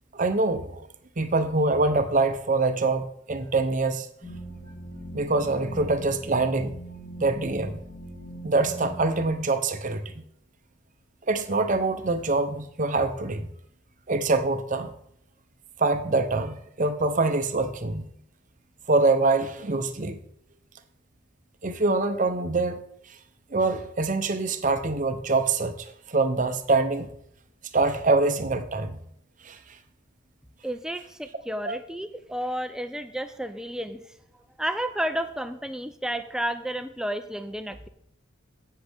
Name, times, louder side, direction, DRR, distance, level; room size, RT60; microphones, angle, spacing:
voice 1, 0.1-0.9 1.2-4.1 5.1-6.8 7.2-7.8 8.4-10.2 11.3-13.5 14.1-14.9 15.8-18.1 18.9-20.2 21.6-22.8 23.1-23.2 23.5-27.1 27.7-29.0 29.4-29.6 31.6-31.8, right 3 dB, 35° right, 9 dB, 0.7 m, -25 dB
sound 1, 4.2-9.3, right 1 dB, 45° left, 2.8 m, -41 dB
voice 2, 30.6-34.0 34.6-37.9, right 1 dB, 5° right, 9 dB, 0.5 m, -31 dB
16.5 x 6.5 x 3.5 m, 0.72 s
head